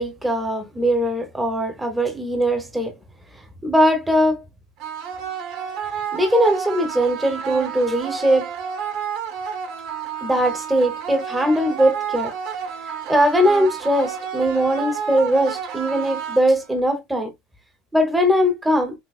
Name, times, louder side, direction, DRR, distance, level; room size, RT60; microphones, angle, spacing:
voice 1, 0.0-2.9 3.6-4.4 6.1-8.5 10.2-12.3 13.1-17.3 17.9-18.9, equal, 5° right, 1.0 m, -20 dB
sound 1, 4.8-16.8, right 7 dB, 50° right, 1.6 m, -30 dB
6.2 x 2.9 x 2.4 m
cardioid pair, 165°, 0 cm